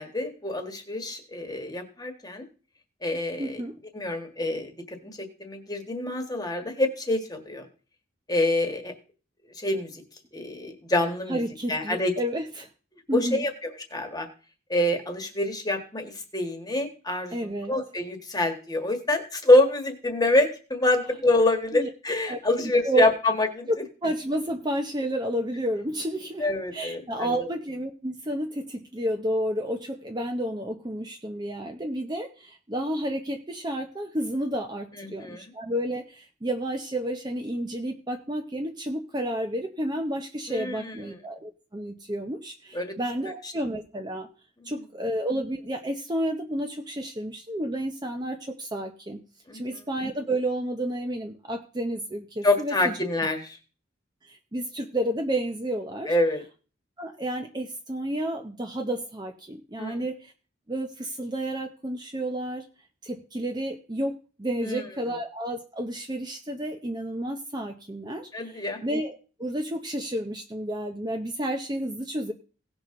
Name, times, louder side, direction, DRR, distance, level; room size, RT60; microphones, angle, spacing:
voice 1, 0.0-2.4 3.0-3.6 3.9-7.6 8.3-8.9 9.6-10.0 10.3-11.4 11.7-12.1 13.1-14.3 14.7-23.7 26.4-27.5 35.0-35.4 40.5-41.1 42.7-42.9 44.6-44.7 49.5-49.6 52.4-53.6 56.1-56.4 59.8-60.0 64.6-64.8 68.3-68.8, left 2 dB, 20° left, 5 dB, 1.5 m, -26 dB
voice 2, 3.4-3.8 11.3-12.7 13.1-13.5 17.3-17.7 21.7-21.9 22.3-23.1 23.7-26.5 26.7-44.3 44.6-49.2 49.5-53.0 54.3-56.1 57.0-60.3 60.7-62.6 63.0-72.3, right 1 dB, 20° right, 4 dB, 0.7 m, -31 dB
17.5 x 6.1 x 3.8 m, 0.36 s
head